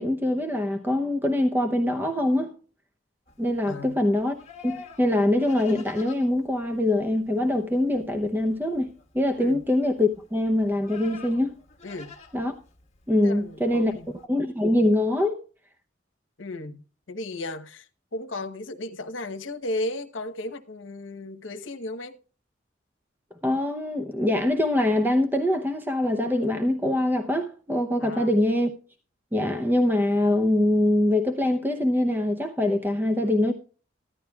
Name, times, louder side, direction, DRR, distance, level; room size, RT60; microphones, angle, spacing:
voice 1, 0.0-2.5 3.4-4.3 4.6-11.5 12.3-12.5 13.1-13.9 14.3-15.4 23.4-28.7 29.3-33.5, left 1 dB, 10° right, 0.7 m, -23 dB
Livestock farm animals working animals, 3.3-14.3, left 5 dB, 35° left, 1.5 m, -49 dB
voice 2, 3.7-4.0 9.4-9.6 11.8-12.1 13.2-14.1 16.4-16.8 17.1-22.2 28.0-28.3, left 1 dB, 85° left, 1.1 m, -35 dB
14.5 x 11.0 x 2.3 m
head